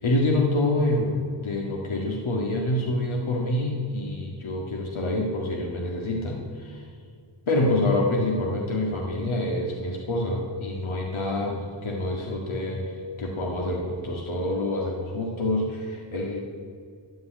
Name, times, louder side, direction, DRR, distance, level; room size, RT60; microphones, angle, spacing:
voice 1, 0.0-6.9 7.5-16.4, left 1 dB, 75° left, 0 dB, 2.0 m, -27 dB
13.0 x 8.3 x 8.9 m, 2.3 s
wide cardioid pair, 125°, 48 cm